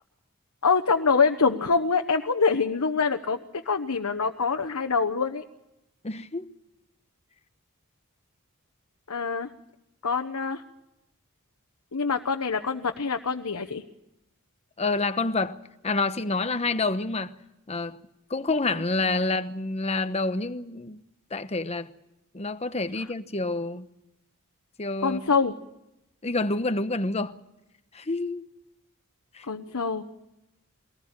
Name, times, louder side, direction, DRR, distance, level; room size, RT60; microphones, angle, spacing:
voice 1, 0.6-5.4 9.1-9.5 10.0-10.6 11.9-13.8 25.0-25.5 29.5-30.0, left 5 dB, 85° left, 1.1 m, -25 dB
voice 2, 6.0-6.5 14.8-15.6 15.8-17.3 17.7-18.0 18.3-21.0 21.3-21.9 22.3-23.9 24.8-25.2 26.2-27.4 27.9-28.5 29.3-29.4, left 3 dB, 30° left, 1.0 m, -28 dB
23.0 x 19.0 x 8.8 m
head